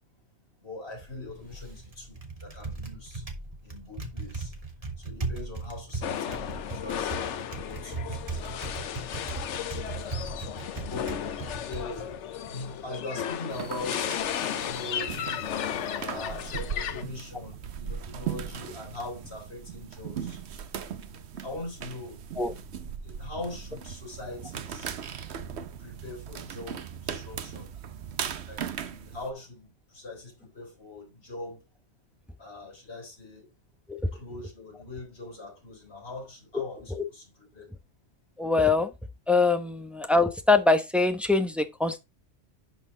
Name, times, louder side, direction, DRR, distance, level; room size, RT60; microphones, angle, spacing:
voice 1, 0.6-3.2 3.6-4.5 5.0-7.2 7.6-8.4 10.8-11.3 11.6-12.2 12.5-14.2 14.5-15.5 16.1-20.4 21.4-22.2 23.0-25.0 25.8-27.7 28.5-31.6 32.4-33.5 34.1-37.7, left 2 dB, 60° left, 3.9 m, -41 dB
Typing, 0.9-13.3, right 3 dB, 30° right, 1.5 m, -38 dB
sound 1, 6.0-17.0, left 9 dB, 75° left, 1.0 m, -34 dB
sound 2, 13.5-29.3, right 8 dB, 65° right, 1.0 m, -38 dB
voice 2, 38.4-38.9 39.3-42.0, left 3 dB, ahead, 0.8 m, -23 dB
11.0 x 4.3 x 3.8 m
omnidirectional pair, 1.2 m